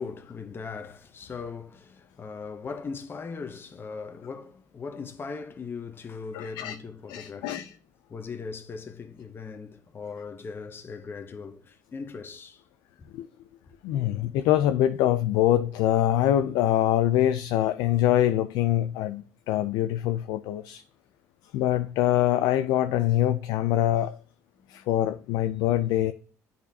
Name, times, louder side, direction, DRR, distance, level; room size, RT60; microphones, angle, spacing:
voice 1, 0.0-7.8 8.1-12.6 13.0-13.1 13.6-13.7 14.4-14.5 24.6-24.9, left 5 dB, 30° left, 0.8 m, -39 dB
voice 2, 6.3-6.8 7.1-7.7 13.1-13.3 13.8-20.8 21.5-24.1 24.7-26.1, left 12 dB, 75° left, 0.4 m, -24 dB
9.9 x 4.2 x 2.8 m
supercardioid pair, 80°, 7 cm